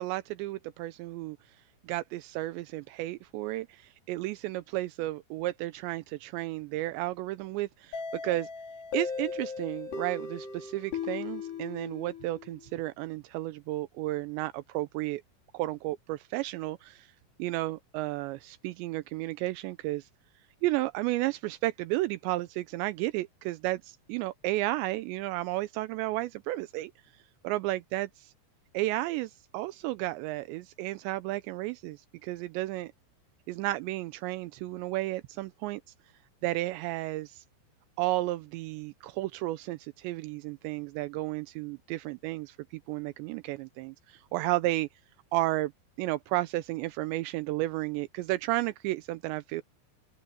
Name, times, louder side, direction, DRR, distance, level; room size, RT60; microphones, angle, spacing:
voice 1, 0.0-1.4 1.8-8.5 8.9-15.2 15.5-17.1 17.4-20.1 20.6-26.9 27.4-28.3 28.7-32.9 33.5-35.8 36.4-37.4 38.0-42.6 42.9-44.9 45.3-45.7 46.0-49.6, right 18 dB, 85° right, 2.9 m, -33 dB
sound 1, 7.9-12.6, left 5 dB, 65° left, 6.9 m, -37 dB
open air
omnidirectional pair, 5.1 m